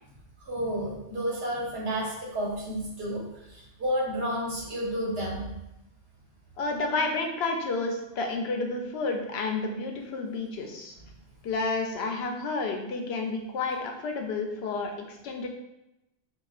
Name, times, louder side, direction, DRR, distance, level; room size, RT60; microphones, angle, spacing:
voice 1, 0.5-3.2 3.5-5.4, equal, 75° right, -4 dB, 1.3 m, -31 dB
voice 2, 6.6-11.0 11.4-15.5, left 3 dB, 80° left, 3 dB, 0.8 m, -30 dB
4.7 x 2.4 x 2.4 m, 0.92 s
omnidirectional pair, 1.0 m